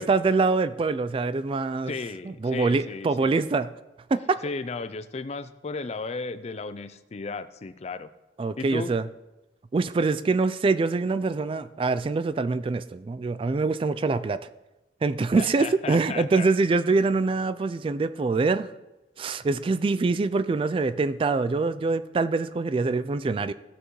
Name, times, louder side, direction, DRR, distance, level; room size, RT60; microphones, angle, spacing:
voice 1, 0.0-1.9 2.3-3.7 4.1-4.4 8.4-9.0 9.7-14.4 15.0-18.7 19.2-23.5, right 3 dB, 30° right, 13 dB, 0.3 m, -24 dB
voice 2, 1.9-3.3 4.4-8.1 8.6-8.9 15.4-16.5, left 4 dB, 35° left, 13 dB, 0.4 m, -35 dB
15.5 x 6.5 x 3.1 m, 1.0 s
head